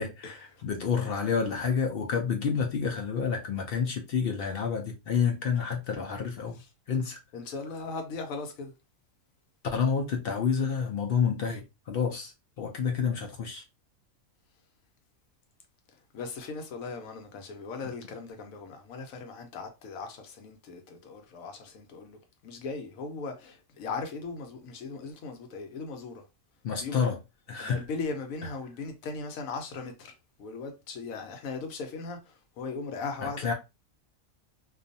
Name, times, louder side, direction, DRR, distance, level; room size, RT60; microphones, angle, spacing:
voice 1, 0.0-6.6 6.9-7.2 9.7-13.6 26.6-27.2 27.5-27.9 33.2-33.5, left 6 dB, 65° left, 0.6 m, -29 dB
voice 2, 7.3-8.7 16.1-26.2 26.8-27.1 27.6-30.1 30.4-33.5, left 4 dB, 80° left, 1.1 m, -38 dB
2.5 x 2.3 x 2.5 m
omnidirectional pair, 1.4 m